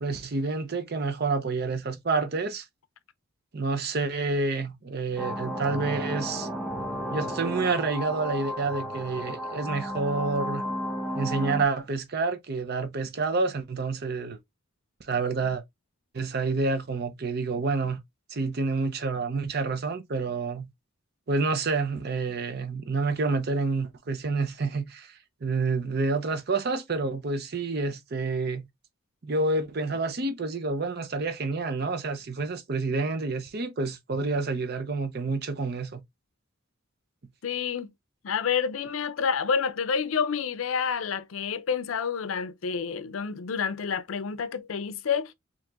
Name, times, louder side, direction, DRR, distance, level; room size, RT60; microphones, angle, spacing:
voice 1, 0.0-2.6 3.5-6.5 7.1-10.6 11.1-14.4 15.1-15.6 16.1-18.0 18.3-20.7 21.3-25.1 25.4-28.7 29.2-36.0, right 3 dB, 50° right, 0.6 m, -28 dB
sound 1, 5.2-11.7, equal, 5° right, 0.8 m, -33 dB
voice 2, 37.4-37.9 38.2-45.3, left 6 dB, 80° left, 0.5 m, -29 dB
4.6 x 2.9 x 2.4 m
head